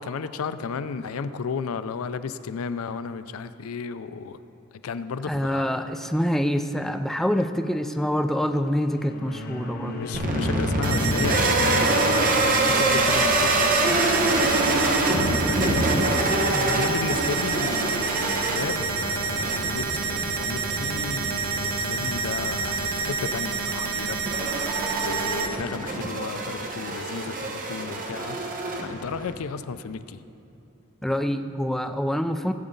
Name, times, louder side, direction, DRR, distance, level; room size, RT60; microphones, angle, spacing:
voice 1, 0.0-4.4 4.8-5.7 9.9-16.0 16.6-24.5 25.0-28.4 28.8-30.2, left 5 dB, 70° left, 12 dB, 0.4 m, -33 dB
voice 2, 5.2-10.0 16.5-16.9 31.0-32.5, equal, ahead, 7 dB, 0.3 m, -26 dB
sound 1, 8.7-15.4, left 1 dB, 45° left, 0.9 m, -35 dB
sound 2, 10.1-29.3, right 2 dB, 40° right, 1.1 m, -26 dB
sound 3, 10.8-25.5, right 5 dB, 80° right, 0.8 m, -28 dB
16.0 x 8.0 x 3.8 m, 2.7 s
head